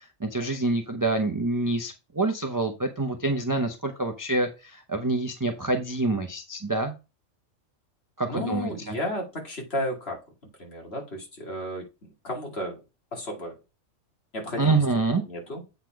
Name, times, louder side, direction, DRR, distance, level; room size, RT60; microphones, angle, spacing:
voice 1, 0.2-6.9 8.2-8.9 14.6-15.2, right 2 dB, 20° right, 0.7 m, -26 dB
voice 2, 8.3-10.2 10.6-11.8 12.2-12.8 13.1-13.6 14.3-14.8 15.2-15.6, left 1 dB, 50° left, 2.6 m, -33 dB
8.1 x 4.2 x 4.6 m
omnidirectional pair, 1.3 m